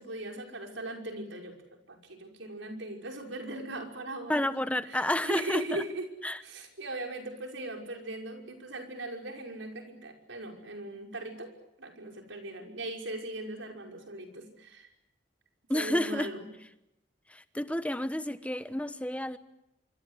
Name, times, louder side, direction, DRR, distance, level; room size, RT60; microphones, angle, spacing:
voice 1, 0.0-1.5 1.9-4.5 4.8-6.1 6.4-11.5 11.8-14.9 15.7-16.5, right 2 dB, 85° right, 3 dB, 5.7 m, -39 dB
voice 2, 4.3-5.8 6.2-6.4 15.7-16.3 17.3-19.4, left 1 dB, 5° left, 11 dB, 1.1 m, -30 dB
26.0 x 25.5 x 8.3 m, 0.85 s
head